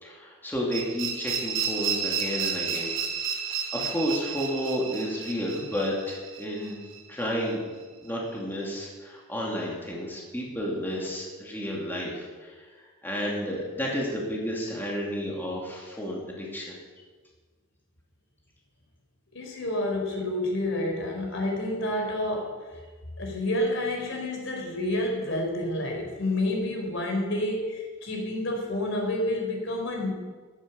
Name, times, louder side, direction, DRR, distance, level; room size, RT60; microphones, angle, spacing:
voice 1, 0.0-2.9 3.5-6.8 7.1-7.7 8.0-16.8, equal, 10° left, -3 dB, 2.7 m, -31 dB
sound 1, 0.7-7.5, right 7 dB, 75° right, 5.3 m, -32 dB
voice 2, 19.3-22.5 23.2-30.1, left 1 dB, 65° left, 1 dB, 4.4 m, -29 dB
14.5 x 13.0 x 7.0 m, 1.4 s
head